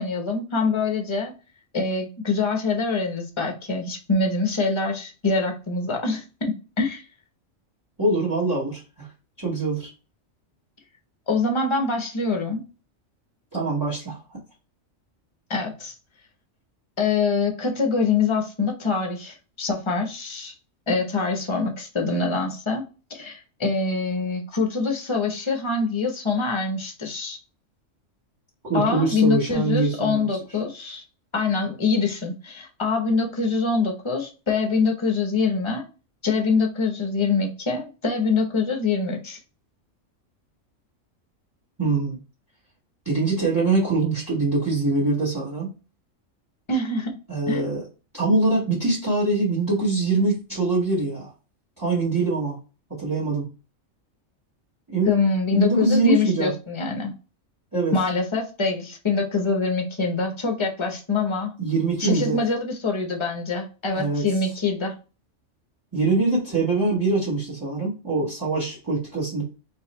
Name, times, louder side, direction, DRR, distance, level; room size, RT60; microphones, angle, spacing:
voice 1, 0.0-1.3 1.7-7.0 11.3-12.6 15.5-15.9 17.0-20.5 20.9-22.8 23.1-27.4 28.7-31.0 31.3-35.8 36.2-39.4 46.7-47.1 47.5-47.6 55.1-57.1 57.9-61.5 62.0-64.9, left 4 dB, 25° left, 3 dB, 0.9 m, -24 dB
voice 2, 8.0-9.1 9.4-9.9 13.5-14.4 28.6-30.3 41.8-42.2 43.0-45.7 47.3-47.8 48.1-51.3 51.8-52.6 52.9-53.5 54.9-55.1 55.5-56.5 57.7-58.0 61.6-62.4 63.9-64.3 65.9-69.4, right 3 dB, 15° right, -4 dB, 1.5 m, -23 dB
4.0 x 2.8 x 4.2 m, 0.33 s
omnidirectional pair, 1.4 m